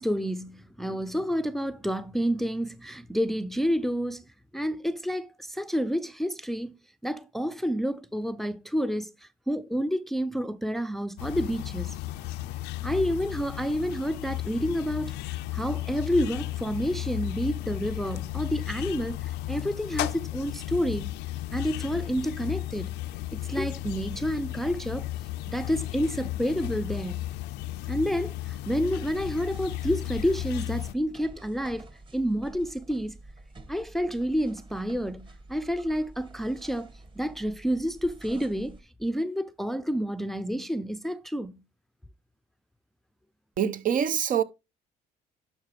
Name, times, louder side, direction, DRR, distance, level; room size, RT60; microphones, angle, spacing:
voice 1, 0.0-4.2 4.5-6.7 7.0-12.0 12.8-21.1 21.5-23.0 23.3-25.1 25.5-27.2 27.9-31.9 32.1-33.2 33.7-36.9 37.2-41.6, equal, ahead, 0.6 m, -29 dB
sound 1, 11.2-30.9, left 15 dB, 85° left, 0.5 m, -34 dB
sound 2, 29.0-38.8, right 2 dB, 30° right, 2.0 m, -48 dB
voice 2, 43.6-44.4, right 8 dB, 50° right, 1.0 m, -25 dB
11.5 x 5.7 x 3.4 m
cardioid pair, 110°, 17 cm